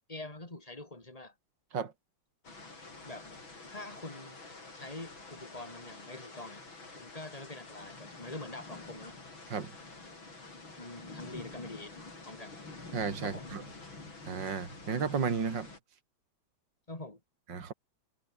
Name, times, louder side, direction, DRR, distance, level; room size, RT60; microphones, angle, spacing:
voice 1, 0.1-1.3 3.0-3.3 3.7-4.4 4.7-6.6 6.9-9.2 10.8-12.0 12.2-12.6 13.2-13.5 16.9-17.2, left 2 dB, 15° left, 4.5 m, -45 dB
sound 1, 2.4-15.8, left 3 dB, 70° left, 6.4 m, -48 dB
voice 2, 12.9-13.6 14.3-15.7 17.5-17.7, right 6 dB, 60° right, 3.2 m, -33 dB
omnidirectional pair, 2.2 m